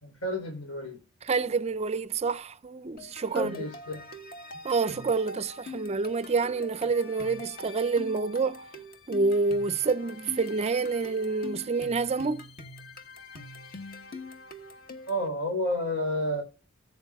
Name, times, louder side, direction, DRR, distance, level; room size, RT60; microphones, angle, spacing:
voice 1, 0.0-1.0 3.3-4.0 15.1-16.4, equal, 80° left, 3.6 m, -30 dB
voice 2, 1.2-3.7 4.6-8.6 9.1-12.5, right 4 dB, 30° right, 0.5 m, -28 dB
sound 1, 3.0-15.3, left 2 dB, 45° left, 1.3 m, -44 dB
18.5 x 8.3 x 2.3 m
head